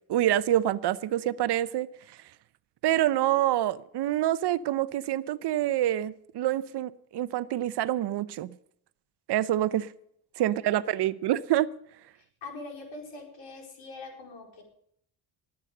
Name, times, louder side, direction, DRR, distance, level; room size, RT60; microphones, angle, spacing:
voice 1, 0.1-2.2 2.8-8.5 9.3-9.9 10.4-11.7, right 13 dB, 65° right, 0.7 m, -27 dB
voice 2, 3.1-3.5 10.4-10.8 12.4-14.6, left 3 dB, 75° left, 4.6 m, -44 dB
19.0 x 8.2 x 6.6 m
cardioid pair, 85°, 44 cm